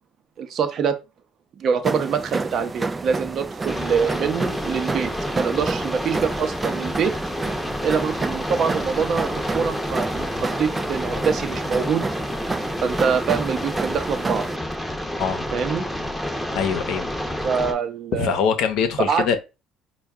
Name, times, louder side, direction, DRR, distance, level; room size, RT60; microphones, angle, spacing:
voice 1, 0.4-1.0 1.6-7.1 7.8-12.0 12.8-14.4 15.5-15.8 17.4-18.4 19.1-19.3, right 6 dB, 55° right, 0.7 m, -24 dB
sound 1, 1.8-14.6, right 3 dB, 25° right, 0.3 m, -30 dB
sound 2, 3.7-17.7, equal, 5° left, 0.8 m, -29 dB
voice 2, 15.1-15.5 16.5-17.1 18.2-19.4, left 7 dB, 70° left, 0.7 m, -23 dB
4.5 x 2.3 x 3.5 m
supercardioid pair, 80°, 0 cm